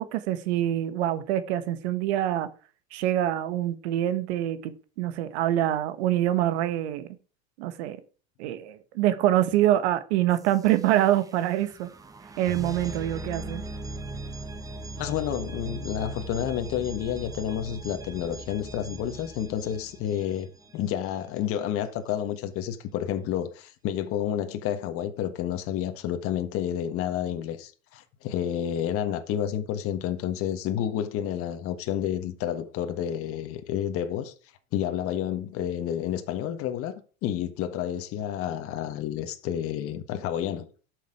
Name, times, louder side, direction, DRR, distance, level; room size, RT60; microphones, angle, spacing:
voice 1, 0.0-2.5 2.9-7.1 7.6-8.0 8.4-11.9 12.4-13.6, right 13 dB, 80° right, 1.6 m, -25 dB
sound 1, 10.3-21.1, right 2 dB, 10° right, 0.8 m, -40 dB
voice 2, 15.0-34.3 34.7-40.7, left 10 dB, 45° left, 1.4 m, -30 dB
11.5 x 6.6 x 4.8 m
supercardioid pair, 150°, 32 cm